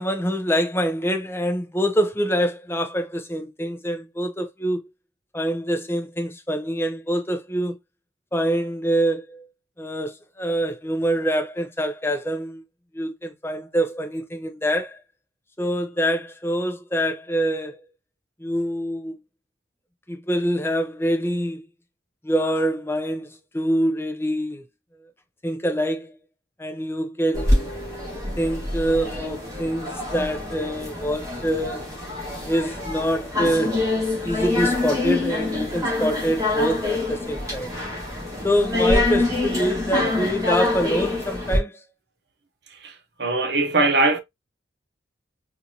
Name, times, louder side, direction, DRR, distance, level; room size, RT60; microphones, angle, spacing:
voice 1, 0.0-4.8 5.3-7.8 8.3-9.5 9.8-12.6 12.9-15.0 15.6-17.8 18.4-19.1 20.1-21.6 22.2-24.6 25.4-26.2 26.6-27.7 28.4-32.0 32.5-37.7 38.4-41.8, equal, 10° left, 0.6 m, -25 dB
sound 1, 27.3-41.6, left 2 dB, 15° right, 1.6 m, -25 dB
voice 2, 42.8-44.2, right 2 dB, 60° right, 0.8 m, -21 dB
4.4 x 2.5 x 2.7 m
head